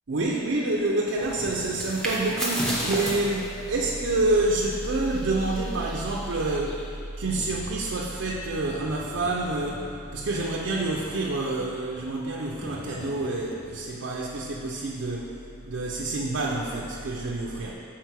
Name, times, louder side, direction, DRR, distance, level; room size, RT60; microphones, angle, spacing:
voice 1, 0.1-6.9 7.2-9.9 10.1-15.4 15.6-17.7, right 2 dB, 65° right, -3 dB, 0.5 m, -27 dB
sound 1, 1.2-6.9, equal, 5° left, 0.7 m, -34 dB
sound 2, 7.4-14.1, left 2 dB, 25° left, 0.3 m, -46 dB
5.6 x 4.3 x 4.6 m, 2.4 s
head